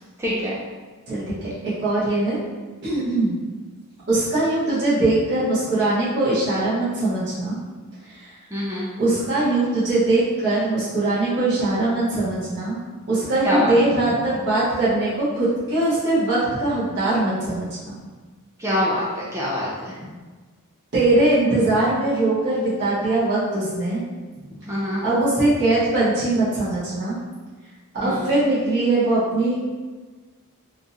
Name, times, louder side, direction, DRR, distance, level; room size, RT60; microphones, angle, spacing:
voice 1, 0.2-0.6 8.5-8.9 13.4-13.7 18.6-19.9 24.7-25.0 28.0-28.2, left 1 dB, 15° right, -7 dB, 0.5 m, -24 dB
voice 2, 1.1-1.5 1.8-2.4 2.8-3.4 4.1-7.5 8.1-8.3 9.0-12.8 13.1-17.9 20.9-24.0 25.0-27.2 28.0-29.5, right 2 dB, 55° right, -11 dB, 1.3 m, -21 dB
3.7 x 2.8 x 2.5 m, 1.4 s
head